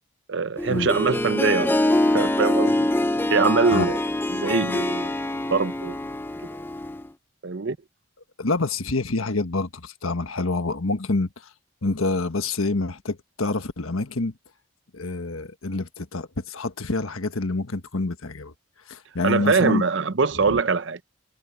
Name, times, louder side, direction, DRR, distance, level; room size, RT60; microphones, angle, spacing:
voice 1, 0.3-2.9 3.3-4.0 4.3-5.1 5.5-6.0 7.4-7.8 19.2-21.0, right 4 dB, 60° right, 0.7 m, -23 dB
Harp, 0.6-7.1, left 1 dB, 10° left, 0.5 m, -24 dB
voice 2, 8.4-11.5 11.8-14.3 14.9-18.5 18.9-19.8 20.4-20.6, left 3 dB, 85° left, 1.4 m, -27 dB
head